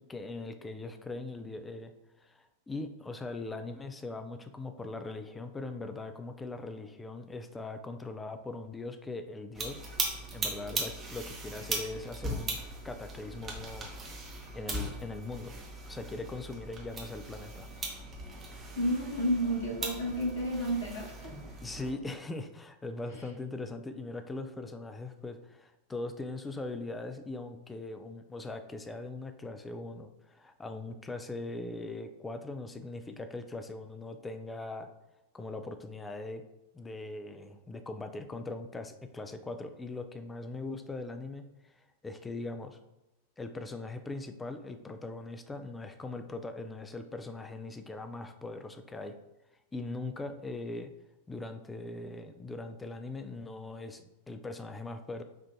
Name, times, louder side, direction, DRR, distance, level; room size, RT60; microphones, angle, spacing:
voice 1, 0.1-9.8 10.3-12.6 12.8-13.9 14.2-15.6 15.9-17.7 21.6-34.9 35.3-36.4 36.7-42.8 43.4-49.2 49.7-50.9 51.3-55.2, left 2 dB, 10° left, 7 dB, 0.4 m, -40 dB
sound 1, 9.5-21.9, right 2 dB, 20° right, 0.8 m, -39 dB
voice 2, 18.7-21.3, equal, 60° left, -2 dB, 1.3 m, -31 dB
5.4 x 2.5 x 2.7 m, 0.95 s
figure-of-eight pair, 90°, 0 cm